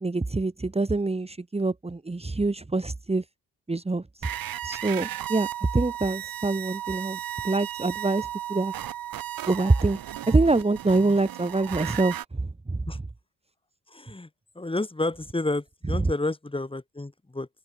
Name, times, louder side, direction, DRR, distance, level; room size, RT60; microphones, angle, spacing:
voice 1, 0.0-3.2 3.7-4.3 4.6-7.2 7.4-8.7 9.5-10.0 10.3-12.8 16.0-16.1, right 3 dB, 15° right, 2.4 m, -25 dB
Tune In Radio Frequency Weird Glitch Items, 4.2-12.2, right 12 dB, 80° right, 5.0 m, -35 dB
voice 2, 13.9-14.3 14.6-17.5, left 2 dB, 15° left, 5.7 m, -30 dB
open air
cardioid pair, 85°, 34 cm